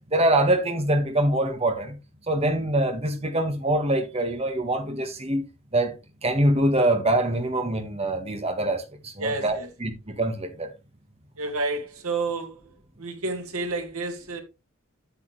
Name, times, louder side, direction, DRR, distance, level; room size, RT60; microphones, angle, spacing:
voice 1, 0.1-1.9 2.3-5.4 5.7-5.9 6.2-10.7, right 1 dB, 30° right, 1.6 m, -24 dB
voice 2, 9.2-9.7 11.4-12.7 13.0-14.4, right 3 dB, 85° right, 2.2 m, -30 dB
8.5 x 8.4 x 3.3 m
head